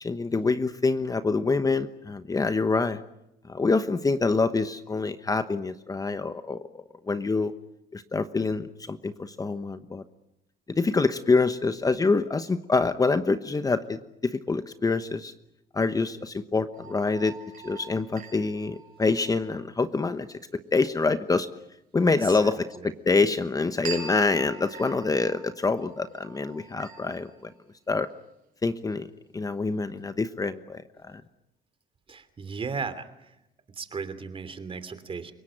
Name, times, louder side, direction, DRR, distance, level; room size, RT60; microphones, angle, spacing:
voice 1, 0.0-3.0 3.5-7.5 7.9-10.0 10.7-15.3 15.7-17.4 17.6-20.4 20.7-21.5 21.9-27.5 27.9-28.1 28.6-31.2, left 3 dB, 20° left, 10 dB, 1.1 m, -26 dB
sound 1, 16.7-19.6 23.8-27.4, right 5 dB, 55° right, 5.9 m, -43 dB
voice 2, 22.4-22.9 32.1-33.1 33.8-35.3, right 5 dB, 30° right, 12 dB, 2.9 m, -35 dB
30.0 x 18.0 x 8.9 m, 0.86 s
cardioid pair, 110°, 17 cm